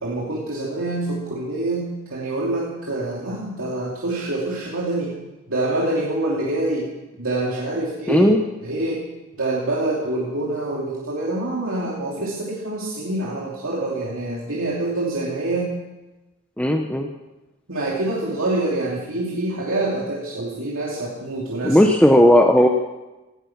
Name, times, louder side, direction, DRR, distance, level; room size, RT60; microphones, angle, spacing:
voice 1, 0.0-5.1 5.5-6.9 7.2-8.3 8.6-9.1 9.4-15.7 17.7-21.8, right 2 dB, 80° right, -4 dB, 2.9 m, -26 dB
voice 2, 8.1-8.4 16.6-17.1 21.6-22.7, equal, 5° left, 3 dB, 0.8 m, -15 dB
18.0 x 12.5 x 5.9 m, 1.1 s
head